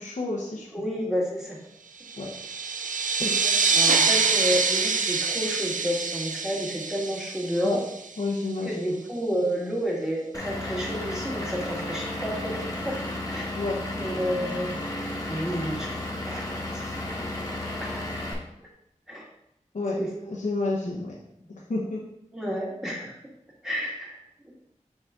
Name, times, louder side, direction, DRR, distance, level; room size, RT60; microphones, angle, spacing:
voice 1, 0.0-0.7 2.2-2.3 3.2-3.3 7.6-7.8 8.2-8.7 13.6-13.8 19.7-20.0 20.4-21.2 21.7-22.0, left 2 dB, 80° left, -4 dB, 0.8 m, -29 dB
voice 2, 0.7-1.6 3.2-7.8 8.6-13.0 13.3-13.5 13.9-14.8 15.3-15.9 16.3-17.6 17.9-18.1 18.6-18.7 19.1-19.3 20.0-20.1 22.3-23.2 23.6-24.5, equal, 5° right, -4 dB, 1.9 m, -31 dB
sound 1, 2.1-8.3, right 5 dB, 85° right, 0.4 m, -25 dB
Vehicle / Engine, 10.3-18.3, left 1 dB, 25° left, 1.3 m, -33 dB
5.3 x 4.9 x 3.6 m, 0.81 s
wide cardioid pair, 60°, 13 cm